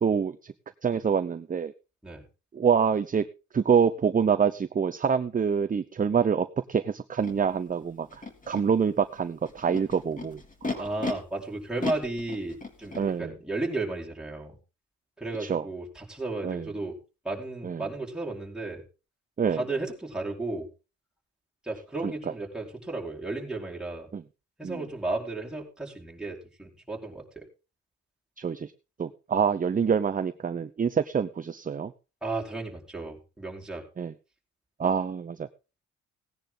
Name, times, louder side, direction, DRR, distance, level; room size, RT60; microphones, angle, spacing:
voice 1, 0.0-0.5 0.8-1.7 2.5-3.2 3.5-10.4 10.7-10.9 13.0-13.3 15.4-15.6 16.4-16.7 17.6-17.8 19.4-19.6 22.0-22.1 24.1-24.2 24.6-24.8 28.4-28.7 29.0-31.9 34.0-34.1 34.8-35.5, right 6 dB, 25° right, 12 dB, 0.7 m, -26 dB
Animal, 7.2-7.3 8.1-8.6 9.5-11.1 11.8-13.0, left 3 dB, 25° left, 3.3 m, -34 dB
voice 2, 10.8-14.6 15.2-17.0 17.2-18.8 19.5-20.7 21.6-24.1 24.6-27.5 32.2-33.8, right 2 dB, ahead, -3 dB, 4.6 m, -34 dB
18.0 x 10.0 x 3.9 m, 0.32 s
cardioid pair, 90°, 30 cm